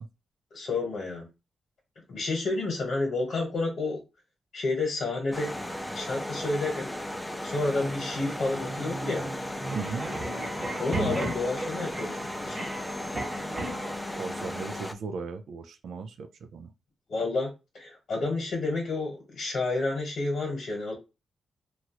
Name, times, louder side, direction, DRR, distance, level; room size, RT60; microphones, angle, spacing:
voice 1, 0.5-1.3 2.1-4.0 4.5-5.6 5.9-7.1 7.4-9.3 10.8-12.6 17.1-17.5 17.7-20.9, left 3 dB, 60° left, 1.1 m, -30 dB
sound 1, 5.3-14.9, left 1 dB, 10° left, 0.4 m, -36 dB
sound 2, 7.6-13.9, right 2 dB, 25° right, 1.1 m, -36 dB
voice 2, 9.7-10.1 14.1-16.7, right 5 dB, 75° right, 0.4 m, -37 dB
3.0 x 2.4 x 2.9 m
cardioid pair, 100°, 0 cm